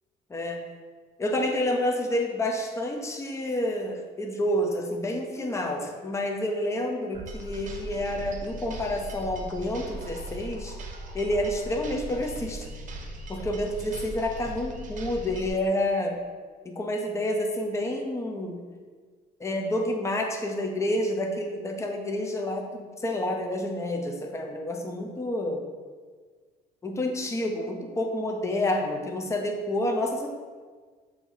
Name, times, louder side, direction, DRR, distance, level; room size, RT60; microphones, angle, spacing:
voice 1, 0.3-0.6 1.2-10.8 11.1-12.7 13.3-16.2 16.6-18.6 19.4-25.6 26.8-30.3, left 1 dB, 15° left, 3 dB, 0.7 m, -29 dB
sound 1, 7.1-15.5, right 1 dB, 50° right, 0.8 m, -39 dB
7.4 x 2.8 x 4.6 m, 1.5 s
cardioid pair, 110°, 17 cm